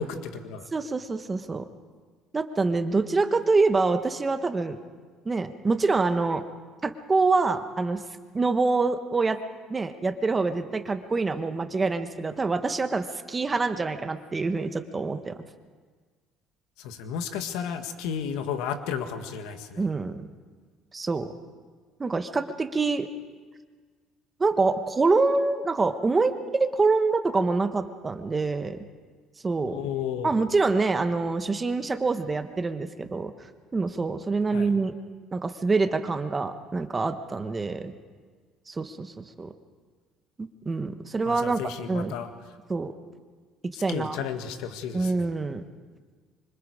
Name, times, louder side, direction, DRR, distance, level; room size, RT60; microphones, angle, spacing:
voice 1, 0.0-0.7 16.8-19.9 29.7-30.3 34.5-34.7 41.3-42.3 43.7-45.3, left 7 dB, 85° left, 7 dB, 1.8 m, -33 dB
voice 2, 0.7-1.6 2.3-4.8 5.2-6.4 6.8-8.0 8.3-9.4 9.7-15.3 19.8-20.3 20.9-21.3 22.0-23.1 24.4-28.8 29.4-29.8 30.2-33.3 33.7-34.9 35.3-37.9 38.7-39.5 40.4-41.6 41.9-42.1 42.7-42.9 43.6-44.2 44.9-45.6, right 3 dB, 20° right, 9 dB, 1.1 m, -26 dB
25.5 x 25.0 x 4.9 m, 1.5 s
cardioid pair, 130°, 0 cm